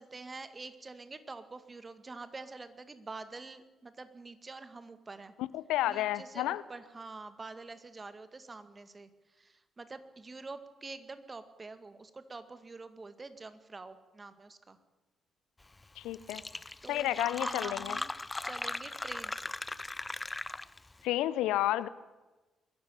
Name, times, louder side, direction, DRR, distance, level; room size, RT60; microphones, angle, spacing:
voice 1, 0.0-5.3 5.9-14.8 16.8-18.1 18.4-19.5, right 3 dB, 30° right, 11 dB, 1.9 m, -46 dB
voice 2, 5.4-6.6 16.0-16.4 16.9-18.0 21.0-21.9, left 14 dB, 70° left, 18 dB, 0.6 m, -31 dB
Fill (with liquid), 15.8-15.9 16.1-20.9, left 2 dB, 20° left, 0.7 m, -38 dB
22.5 x 13.5 x 8.7 m, 1.2 s
figure-of-eight pair, 40°, 0 cm